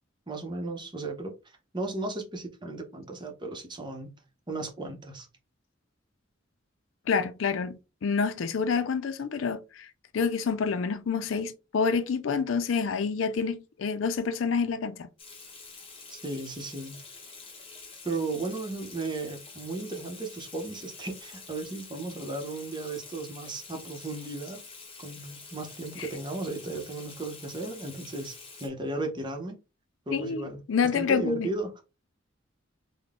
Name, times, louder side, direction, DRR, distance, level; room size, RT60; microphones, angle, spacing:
voice 1, 0.3-1.3 1.7-4.2 4.5-5.3 16.1-17.0 18.0-24.6 25.0-29.6 30.1-30.6 30.9-31.7, right 2 dB, 25° right, 0.8 m, -35 dB
voice 2, 7.1-15.1 26.0-26.1 30.1-31.5, left 5 dB, 80° left, 0.4 m, -28 dB
Water tap faucet / Sink (filling or washing), 15.2-28.7, left 4 dB, 30° left, 1.0 m, -47 dB
3.7 x 2.1 x 3.6 m
head